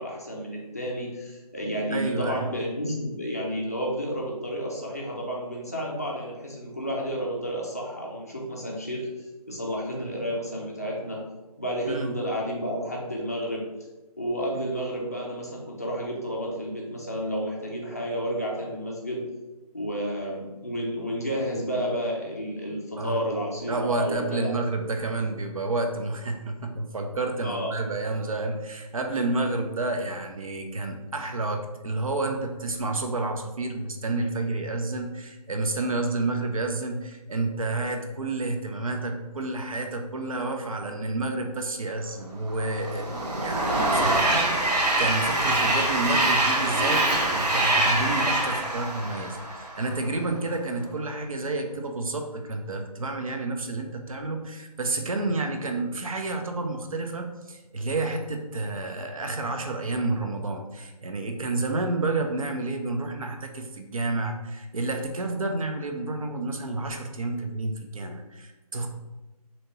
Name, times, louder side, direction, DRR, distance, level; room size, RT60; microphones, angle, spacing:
voice 1, 0.0-9.1 9.5-11.2 11.6-13.6 14.2-19.2 19.7-24.5 27.4-27.8, equal, 25° left, -3 dB, 0.4 m, -31 dB
voice 2, 1.9-2.5 11.9-12.1 23.0-23.2 23.7-68.9, right 2 dB, 60° right, 5 dB, 0.5 m, -30 dB
Train, 42.5-50.0, right 2 dB, 90° right, 0.9 m, -24 dB
3.2 x 2.8 x 2.7 m, 1.1 s
figure-of-eight pair, 175°, 20 cm